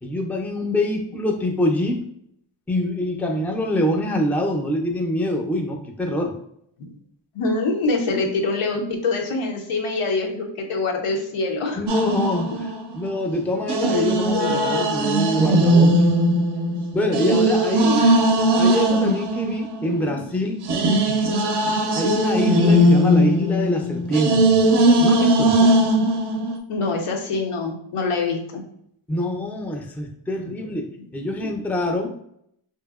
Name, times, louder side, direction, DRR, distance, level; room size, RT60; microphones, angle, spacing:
voice 1, 0.0-2.0 2.7-6.3 8.1-8.3 11.7-16.0 16.9-18.0 18.6-20.7 22.0-24.6 25.0-25.7 29.1-32.1, left 1 dB, 5° left, 3 dB, 0.4 m, -25 dB
voice 2, 7.3-11.8 12.5-12.7 14.3-14.9 17.8-18.2 19.8-20.2 20.9-21.2 25.8-25.9 26.7-28.6, left 3 dB, 85° left, 2 dB, 0.7 m, -25 dB
sound 1, 11.9-13.1 13.7-20.1 20.6-26.6, right 1 dB, 55° right, 0.5 m, -19 dB
2.9 x 2.6 x 2.3 m, 0.71 s
cardioid pair, 55°, 50 cm